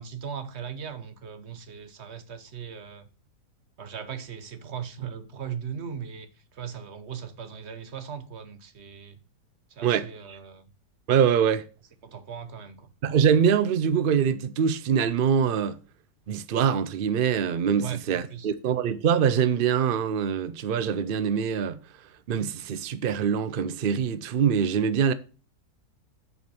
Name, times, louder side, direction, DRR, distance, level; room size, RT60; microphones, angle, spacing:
voice 1, 0.0-3.0 3.8-9.2 9.7-10.7 12.0-12.9 17.8-18.5, right 7 dB, 45° right, 1.1 m, -38 dB
voice 2, 11.1-11.6 13.0-15.7 16.3-21.8 22.3-25.1, right 7 dB, 80° right, 0.4 m, -24 dB
7.7 x 5.1 x 6.9 m
omnidirectional pair, 1.7 m